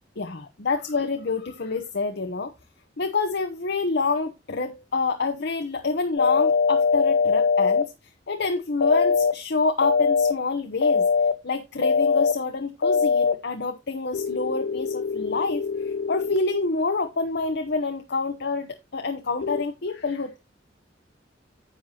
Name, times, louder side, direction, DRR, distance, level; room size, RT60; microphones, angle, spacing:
voice 1, 0.2-2.5 3.0-7.9 8.3-11.0 11.4-20.4, left 3 dB, 60° left, 0.9 m, -27 dB
sound 1, 6.2-7.8 8.8-9.3 9.8-10.3 10.8-11.3 11.8-12.3 12.8-13.3 14.1-16.4 19.4-19.6, left 5 dB, 85° left, 0.5 m, -22 dB
10.0 x 7.9 x 2.8 m
head